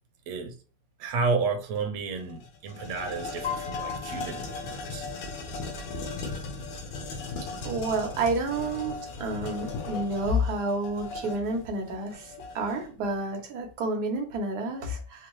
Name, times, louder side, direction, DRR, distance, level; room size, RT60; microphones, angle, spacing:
voice 1, 0.3-0.6 1.0-5.0, right 4 dB, 80° right, 1.6 m, -31 dB
sound 1, 1.8-1.9 2.2-12.9, left 3 dB, 80° left, 1.8 m, -37 dB
Piano, 3.4-5.5, left 8 dB, 45° left, 1.3 m, -39 dB
voice 2, 7.6-15.3, right 1 dB, 55° right, 1.2 m, -30 dB
4.4 x 2.3 x 3.0 m
omnidirectional pair, 2.3 m